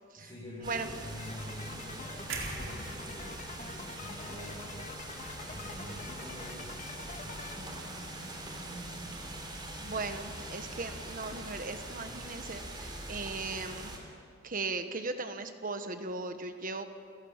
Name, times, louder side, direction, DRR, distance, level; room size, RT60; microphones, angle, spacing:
voice 1, 0.2-4.9 5.4-6.8 7.1-9.2, equal, 25° left, -7 dB, 5.8 m, -46 dB
sound 1, 0.6-14.0, right 1 dB, 25° right, 3.7 m, -43 dB
sound 2, 1.2-7.5, left 4 dB, 40° left, 1.7 m, -47 dB
sound 3, 2.3-6.3 6.7-6.9, right 3 dB, 90° right, 4.2 m, -44 dB
voice 2, 9.8-13.9 14.4-16.9, right 3 dB, 45° right, 8 dB, 1.3 m, -37 dB
29.5 x 17.5 x 7.3 m, 2.3 s
head